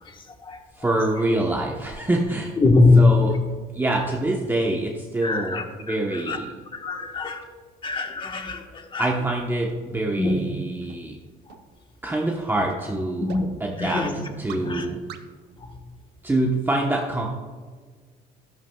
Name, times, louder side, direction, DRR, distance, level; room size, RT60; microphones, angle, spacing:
voice 1, 0.0-0.6 2.6-3.4 3.9-4.0 5.2-6.4 6.7-7.5 7.8-9.1 10.2-10.5 11.5-11.6 13.2-13.5 13.8-14.9 15.6-15.8, left 3 dB, 30° left, 4 dB, 1.3 m, -22 dB
voice 2, 0.7-2.6 3.0-3.3 3.7-6.5 9.0-11.2 12.0-13.3 13.6-14.0 14.4-15.0 16.2-17.3, right 2 dB, 10° right, -1 dB, 1.0 m, -25 dB
sound 1, 8.5-8.6 9.1-9.2 9.7-9.8 10.3-10.4 10.9-11.0 11.5-11.6 12.1-12.2 12.7-12.8 13.3-13.4 13.9-14.0 14.5-14.6 15.1-15.2, right 10 dB, 80° right, 0.8 m, -40 dB
12.5 x 11.0 x 2.3 m, 1.5 s
cardioid pair, 110°, 17 cm